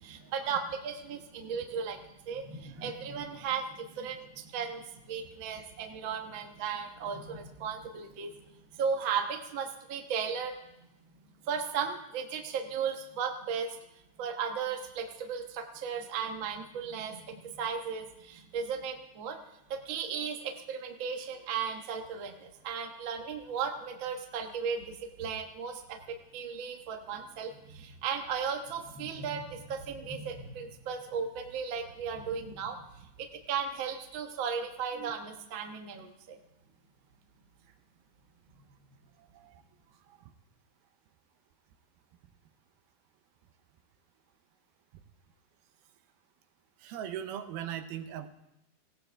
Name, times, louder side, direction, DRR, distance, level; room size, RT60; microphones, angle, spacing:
voice 1, 0.0-8.3 8.8-10.5 11.5-13.8 14.2-19.4 19.7-32.9 33.2-36.4, right 6 dB, 65° right, 3 dB, 1.2 m, -36 dB
voice 2, 39.2-39.6 40.1-40.2 46.8-48.3, right 10 dB, 85° right, 9 dB, 2.8 m, -40 dB
19.0 x 17.0 x 3.4 m, 0.91 s
omnidirectional pair, 4.2 m